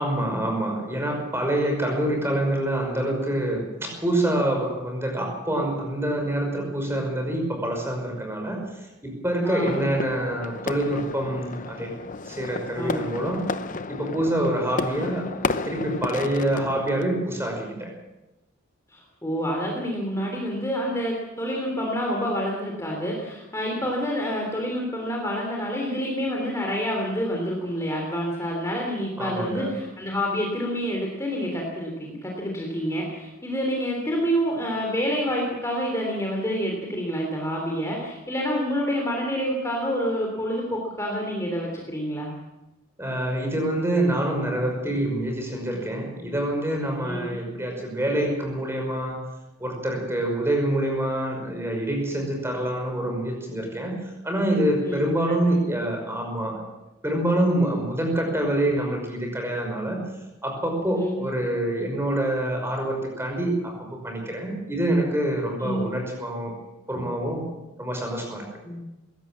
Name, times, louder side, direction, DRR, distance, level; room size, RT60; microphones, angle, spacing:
voice 1, 0.0-11.9 12.2-13.4 13.9-17.9 29.2-29.8 43.0-49.2 49.6-56.6 57.0-60.1 60.4-66.5 66.9-67.4 67.8-68.5, right 1 dB, 10° right, 2 dB, 5.5 m, -26 dB
voice 2, 9.4-9.9 12.7-13.4 18.9-42.3 47.0-47.3 54.8-55.0 55.5-55.6 60.9-61.2 65.6-65.8 68.6-68.9, equal, 15° left, -1 dB, 3.4 m, -28 dB
sound 1, 9.6-17.1, left 3 dB, 40° left, 0.9 m, -32 dB
21.5 x 17.0 x 7.5 m, 0.97 s
head